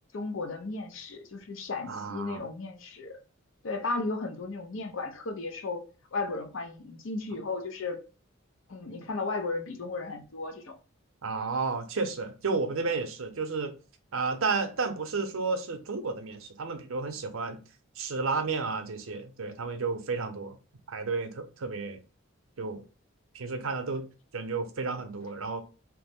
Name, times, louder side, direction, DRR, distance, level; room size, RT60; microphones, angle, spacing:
voice 1, 0.1-3.2 3.6-5.8 6.1-8.0 8.7-10.7, left 3 dB, 70° left, 0.6 m, -35 dB
voice 2, 1.9-2.4 11.2-13.7 14.1-17.6 18.0-20.6 20.9-22.0 22.6-22.8 23.3-24.1 24.3-25.6, right 4 dB, 80° right, 0.6 m, -32 dB
3.0 x 2.0 x 3.4 m
head